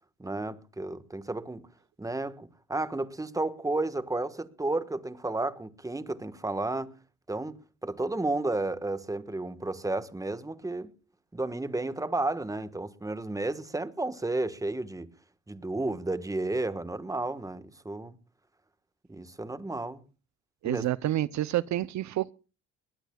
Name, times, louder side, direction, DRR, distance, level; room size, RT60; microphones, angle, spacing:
voice 1, 0.2-1.7 2.0-6.9 7.3-10.9 11.3-15.1 15.5-18.2 19.1-20.0 20.6-20.8, right 2 dB, 10° right, 1.3 m, -32 dB
voice 2, 20.6-22.3, right 14 dB, 65° right, 0.6 m, -28 dB
21.5 x 19.0 x 2.3 m
cardioid pair, 90°, 30 cm